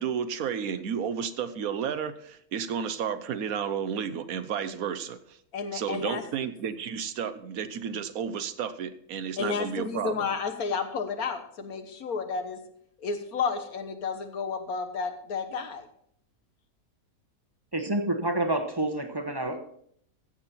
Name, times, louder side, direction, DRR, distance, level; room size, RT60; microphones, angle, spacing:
voice 1, 0.0-5.4 5.7-10.3, right 7 dB, 80° right, 12 dB, 1.2 m, -32 dB
voice 2, 5.5-6.2 9.4-12.6 13.0-15.8, left 5 dB, 85° left, 7 dB, 1.7 m, -31 dB
voice 3, 17.7-19.6, right 1 dB, 20° right, 6 dB, 0.9 m, -28 dB
15.0 x 7.4 x 4.2 m, 0.66 s
omnidirectional pair, 1.5 m